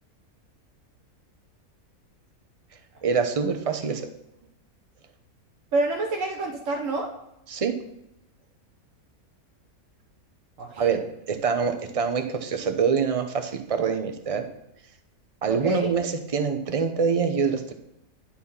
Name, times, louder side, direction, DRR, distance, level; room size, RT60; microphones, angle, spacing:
voice 1, 3.0-4.0 7.5-7.7 10.8-14.5 15.4-17.7, right 6 dB, 30° right, 6 dB, 0.7 m, -25 dB
voice 2, 5.7-7.1 10.6-10.8 15.5-15.9, right 2 dB, 65° right, 1 dB, 1.2 m, -27 dB
11.0 x 4.2 x 5.5 m, 0.85 s
omnidirectional pair, 1.6 m